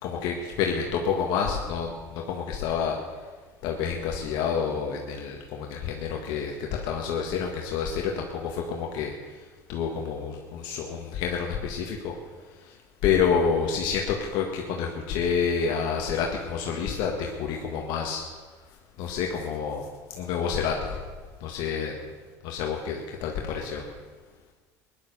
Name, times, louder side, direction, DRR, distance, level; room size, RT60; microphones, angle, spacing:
voice 1, 0.0-3.3 3.6-12.2 12.5-18.2 19.0-21.0 21.4-21.9 22.4-23.9, left 6 dB, 70° left, 1 dB, 1.9 m, -29 dB
16.5 x 11.0 x 6.8 m, 1.4 s
supercardioid pair, 100°, 8 cm